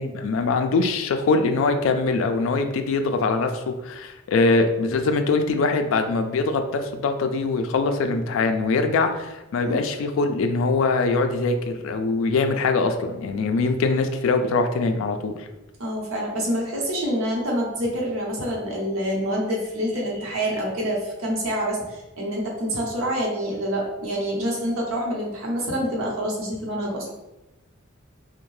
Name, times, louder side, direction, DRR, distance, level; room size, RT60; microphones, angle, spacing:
voice 1, 0.0-15.5, left 3 dB, 70° left, 6 dB, 0.3 m, -23 dB
voice 2, 15.8-27.1, equal, 85° right, -2 dB, 0.8 m, -27 dB
2.6 x 2.1 x 3.1 m, 1.0 s
head